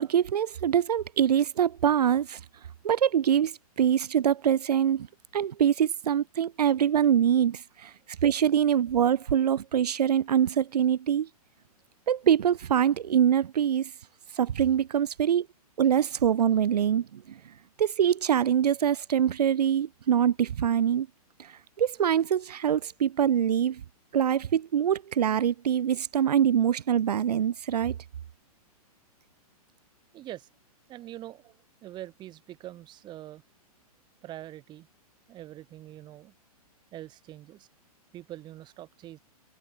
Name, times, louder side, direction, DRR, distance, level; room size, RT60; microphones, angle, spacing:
voice 1, 0.0-2.4 2.8-5.1 5.3-7.9 8.2-11.3 12.1-13.9 14.3-15.5 15.8-17.4 17.8-21.1 21.4-23.8 24.1-28.0, right 9 dB, 85° right, 0.9 m, -24 dB
voice 2, 30.1-30.5 30.9-33.4 34.2-34.9 35.3-36.3 36.9-37.7 38.1-39.2, right 14 dB, 25° right, 5.4 m, -44 dB
hypercardioid pair, 150°, 20 cm